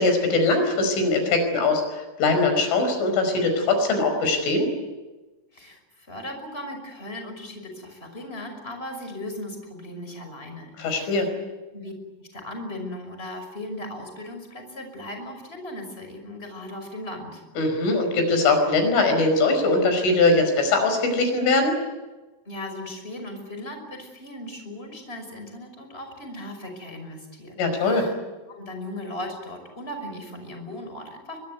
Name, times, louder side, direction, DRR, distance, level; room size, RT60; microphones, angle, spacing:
voice 1, 0.0-4.7 10.8-11.3 17.6-21.7 27.6-28.1, left 3 dB, 80° left, 6 dB, 7.7 m, -21 dB
voice 2, 5.5-11.3 11.7-11.9 12.2-17.4 22.5-28.1 28.5-31.4, left 1 dB, 10° left, 5 dB, 5.5 m, -37 dB
24.0 x 22.5 x 9.4 m, 1.2 s
omnidirectional pair, 5.6 m